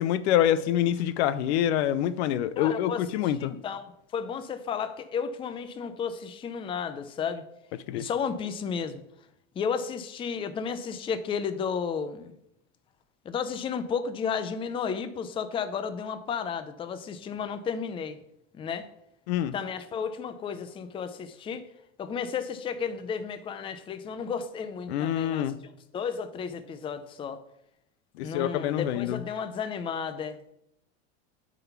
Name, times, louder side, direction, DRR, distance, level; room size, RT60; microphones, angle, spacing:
voice 1, 0.0-3.5 7.9-8.0 19.3-19.5 24.9-25.6 28.2-29.2, left 11 dB, 75° left, 0.6 m, -26 dB
voice 2, 2.6-3.0 3.4-7.4 7.9-9.0 9.6-12.3 13.2-18.2 18.5-18.9 19.5-21.7 22.0-27.4 28.2-30.4, left 6 dB, 15° left, 0.4 m, -33 dB
9.0 x 4.0 x 5.8 m
supercardioid pair, 135°, 33 cm